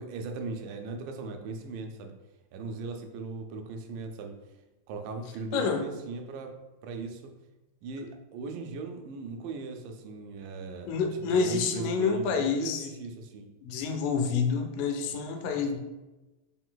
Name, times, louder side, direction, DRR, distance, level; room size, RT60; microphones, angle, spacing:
voice 1, 0.0-2.2 2.5-4.4 4.9-6.6 6.8-7.3 7.8-10.9 11.3-13.5, right 4 dB, 90° right, 4 dB, 2.2 m, -38 dB
voice 2, 5.5-5.8 10.9-12.8 13.6-15.8, left 5 dB, 85° left, 5 dB, 2.1 m, -28 dB
5.3 x 3.8 x 2.3 m, 1.1 s
omnidirectional pair, 3.8 m